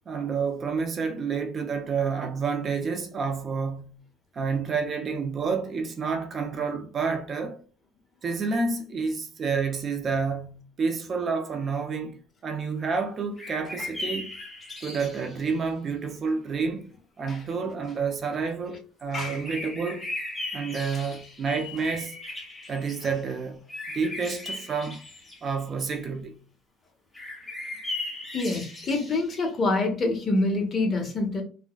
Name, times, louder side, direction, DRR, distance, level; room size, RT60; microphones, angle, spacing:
voice 1, 0.1-4.0 4.3-7.6 8.2-14.3 14.8-16.9 17.2-20.1 20.5-22.2 22.7-23.6 23.9-25.0 25.4-26.4, right 5 dB, 35° right, 0.6 m, -29 dB
sound 1, 13.4-15.4 19.0-23.2 23.7-25.5 27.1-29.5, left 2 dB, 15° left, 1.4 m, -37 dB
voice 2, 28.3-31.4, left 2 dB, 35° left, 1.0 m, -26 dB
3.7 x 2.2 x 2.3 m
cardioid pair, 120°, 0 cm